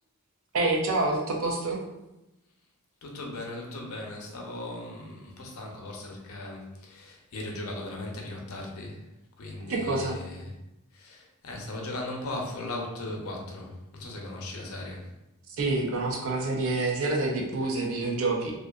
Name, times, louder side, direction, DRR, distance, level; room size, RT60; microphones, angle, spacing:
voice 1, 0.5-1.8 9.7-10.2 15.6-18.6, right 2 dB, 70° right, 0 dB, 0.5 m, -27 dB
voice 2, 3.0-9.0 9.4-10.5 10.9-15.1, left 2 dB, 80° left, 0 dB, 0.6 m, -38 dB
2.5 x 2.4 x 2.3 m, 0.94 s
head